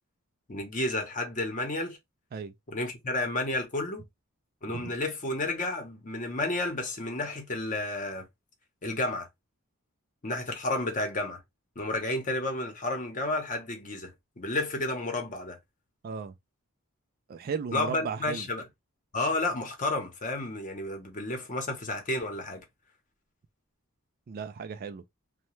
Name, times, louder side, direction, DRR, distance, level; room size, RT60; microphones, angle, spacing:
voice 1, 0.5-2.0 2.7-4.0 4.6-8.3 8.8-9.3 10.2-11.4 11.8-14.1 14.4-15.6 17.7-18.7 19.1-22.6, left 2 dB, 35° left, 0.8 m, -31 dB
voice 2, 16.0-16.3 17.3-18.5 24.3-25.0, right 6 dB, 45° right, 0.3 m, -35 dB
2.8 x 2.2 x 3.0 m
head